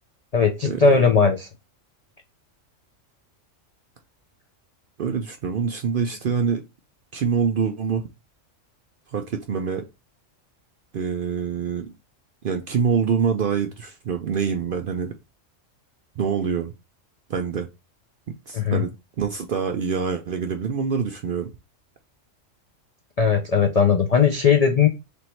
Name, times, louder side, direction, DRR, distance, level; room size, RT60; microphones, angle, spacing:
voice 1, 0.3-1.5 18.5-18.8 23.2-24.9, left 6 dB, 65° left, 0.4 m, -18 dB
voice 2, 5.0-6.6 7.1-8.0 9.1-9.9 10.9-11.9 12.4-15.1 16.2-16.7 17.3-17.7 18.5-21.5, right 6 dB, 60° right, 0.5 m, -25 dB
3.4 x 3.0 x 4.3 m
omnidirectional pair, 1.3 m